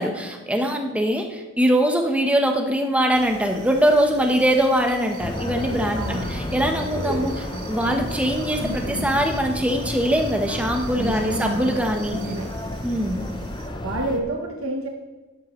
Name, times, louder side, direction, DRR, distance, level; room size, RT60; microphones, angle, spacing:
voice 1, 0.0-12.2 12.8-13.3, equal, 5° right, 3 dB, 1.0 m, -22 dB
sound 1, 3.1-13.7, right 2 dB, 90° right, 2.0 m, -39 dB
sound 2, 5.2-14.2, left 1 dB, 20° left, 0.7 m, -32 dB
voice 2, 6.0-6.3 11.0-11.7 12.3-12.5 13.8-14.9, right 2 dB, 65° right, 1 dB, 1.0 m, -28 dB
sound 3, 8.4-13.1, left 1 dB, 50° left, 2.0 m, -39 dB
13.0 x 11.5 x 3.1 m, 1.2 s
head